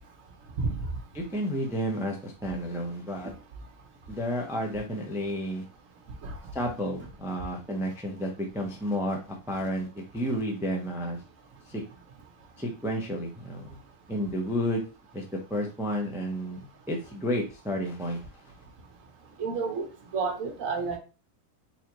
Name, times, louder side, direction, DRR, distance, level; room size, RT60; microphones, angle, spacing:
voice 1, 1.1-3.3 4.1-5.6 6.5-9.2 9.5-11.2 11.7-11.8 12.6-13.8 14.1-14.8 15.1-18.2, equal, 5° right, 0 dB, 0.4 m, -31 dB
voice 2, 19.4-19.9 20.1-21.0, right 4 dB, 65° right, 3 dB, 1.2 m, -29 dB
3.9 x 3.1 x 2.9 m, 0.33 s
omnidirectional pair, 1.5 m